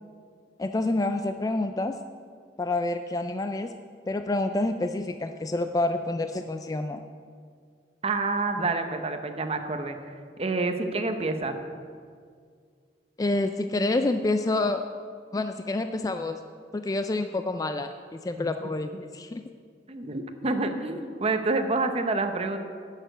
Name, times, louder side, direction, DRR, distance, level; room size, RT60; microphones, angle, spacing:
voice 1, 0.6-2.0 2.6-3.7 4.1-7.0 13.2-14.8 15.3-16.4 16.7-19.4, left 2 dB, 20° left, 7 dB, 0.3 m, -28 dB
voice 2, 8.0-10.0 10.4-11.5 18.4-18.7 19.9-22.6, right 3 dB, 35° right, 7 dB, 0.8 m, -28 dB
11.0 x 6.6 x 7.9 m, 2.1 s
head